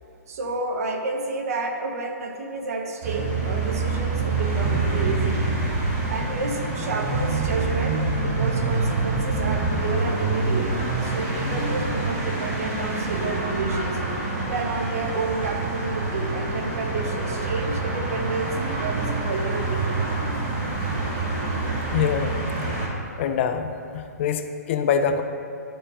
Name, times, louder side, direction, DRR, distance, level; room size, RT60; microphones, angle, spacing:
voice 1, 0.3-5.4 6.1-14.0 14.5-20.5, right 3 dB, 60° right, 4 dB, 0.8 m, -30 dB
sound 1, 3.0-22.9, right 3 dB, 40° right, 1.4 m, -26 dB
voice 2, 21.9-22.3 23.2-25.2, left 7 dB, 45° left, 7 dB, 0.4 m, -24 dB
10.5 x 5.0 x 2.4 m, 2.5 s
hypercardioid pair, 125°, 9 cm